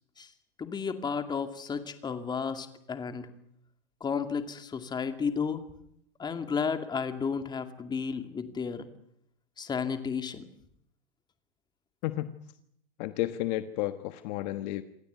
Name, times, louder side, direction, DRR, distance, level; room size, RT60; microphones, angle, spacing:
voice 1, 0.6-3.3 4.0-5.6 6.2-8.8 9.6-10.5, left 6 dB, 15° left, 8 dB, 2.4 m, -32 dB
voice 2, 12.0-12.4 13.0-14.8, left 16 dB, 45° left, 11 dB, 1.4 m, -32 dB
27.0 x 17.5 x 9.4 m, 0.74 s
supercardioid pair, 140°, 30 cm